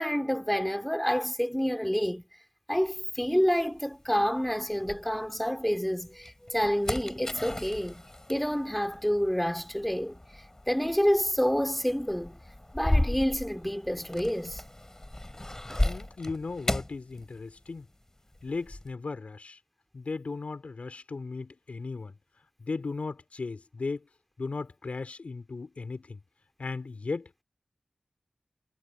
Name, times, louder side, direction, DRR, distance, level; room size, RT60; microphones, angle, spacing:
voice 1, 0.0-2.2 2.7-8.0 8.3-12.4 12.7-14.6, equal, 5° left, 2.8 m, -28 dB
sound 1, 2.8-5.6 6.1-17.8 18.1-18.9, left 1 dB, 20° left, 5.1 m, -35 dB
voice 2, 15.8-17.9 18.4-19.6 19.9-22.1 22.6-24.1 24.4-26.2 26.6-27.4, left 4 dB, 65° left, 3.4 m, -36 dB
wide cardioid pair, 65°, 2 cm